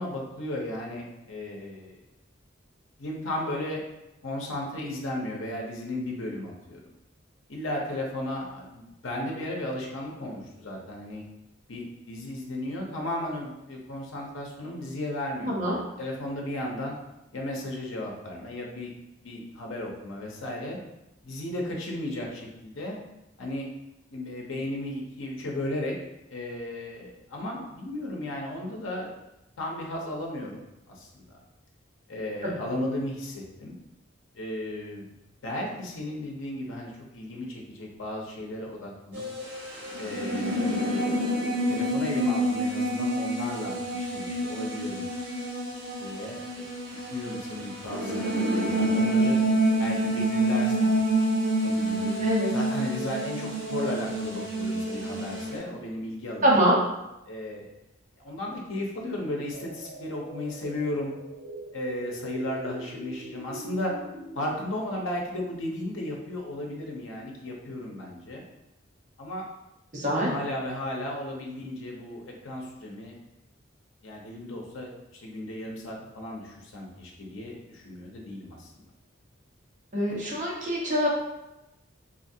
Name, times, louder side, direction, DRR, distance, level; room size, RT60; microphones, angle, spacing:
voice 1, 0.0-2.0 3.0-3.8 4.2-6.8 7.5-11.2 11.7-16.9 17.3-18.9 19.2-20.8 21.2-23.0 23.4-23.7 24.1-26.0 26.3-29.1 29.6-31.4 32.1-33.7 34.4-35.1 35.4-39.2 40.0-41.1 41.7-45.1 46.0-46.6 46.9-49.4 49.8-51.0 51.6-56.5 57.3-57.7 58.2-61.1 61.7-63.9 64.4-68.4 69.2-69.4 70.2-73.1 74.0-78.8, left 1 dB, 80° left, -1 dB, 0.7 m, -35 dB
voice 2, 15.4-15.8 32.4-32.6 52.2-52.5 56.4-56.7 69.9-70.3 79.9-81.1, equal, 40° right, -4 dB, 0.9 m, -24 dB
sound 1, 39.1-55.6, right 1 dB, 80° right, 1.2 m, -27 dB
sound 2, 59.5-64.5, right 1 dB, 60° right, 0.5 m, -42 dB
3.8 x 2.5 x 2.7 m, 0.93 s
head